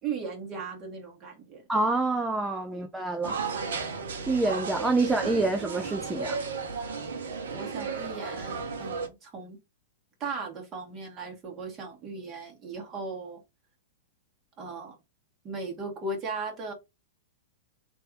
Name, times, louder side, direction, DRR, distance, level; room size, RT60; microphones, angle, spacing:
voice 1, 0.0-1.6 2.7-2.8 3.2-3.3 7.5-9.6 10.2-13.4 14.6-15.0 15.4-16.7, right 4 dB, 25° right, 1.8 m, -37 dB
voice 2, 1.7-3.4 4.3-6.4, right 2 dB, 10° right, 0.5 m, -27 dB
sound 1, 3.2-9.1, right 5 dB, 60° right, 0.9 m, -34 dB
3.3 x 2.8 x 4.4 m
figure-of-eight pair, 100°, 0 cm